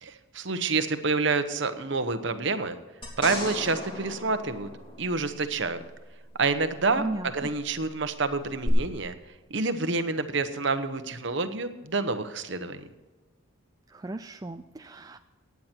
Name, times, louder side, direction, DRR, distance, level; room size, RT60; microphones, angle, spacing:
voice 1, 0.0-2.8 3.2-4.7 5.0-5.8 6.4-9.1 9.5-12.9, right 3 dB, 55° right, 10 dB, 1.0 m, -28 dB
sound 1, 3.0-5.5 8.6-8.7, left 1 dB, 25° left, 3.1 m, -37 dB
voice 2, 7.0-7.5 13.9-15.2, right 2 dB, 15° right, 8 dB, 0.3 m, -36 dB
16.5 x 9.5 x 4.5 m, 1.2 s
head